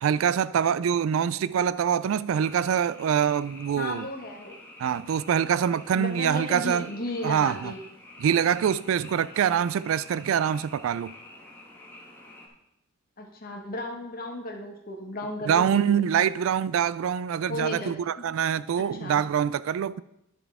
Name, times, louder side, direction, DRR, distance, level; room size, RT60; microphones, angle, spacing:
voice 1, 0.0-4.1 4.8-6.9 7.2-7.7 8.2-11.1 15.4-20.0, right 8 dB, 70° right, 0.3 m, -25 dB
Frog, 2.3-12.5, left 1 dB, 10° left, 1.4 m, -48 dB
voice 2, 3.7-4.6 6.0-7.8 13.2-16.3 17.5-18.2 18.8-19.2, left 1 dB, 45° left, 1.5 m, -35 dB
11.0 x 6.8 x 3.6 m
head